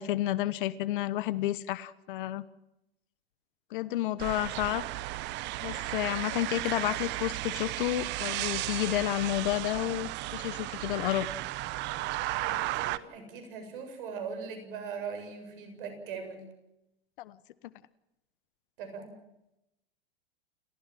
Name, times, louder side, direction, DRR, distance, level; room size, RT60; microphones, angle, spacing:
voice 1, 0.0-2.4 3.7-4.9 5.6-11.3 17.2-17.4, left 15 dB, 55° left, 18 dB, 1.1 m, -31 dB
sound 1, 4.2-13.0, right 17 dB, 35° right, 1.0 m, -34 dB
voice 2, 12.4-16.4 18.8-19.2, right 5 dB, 60° right, 8 dB, 7.7 m, -40 dB
29.5 x 15.5 x 7.7 m, 0.88 s
hypercardioid pair, 115°, 30 cm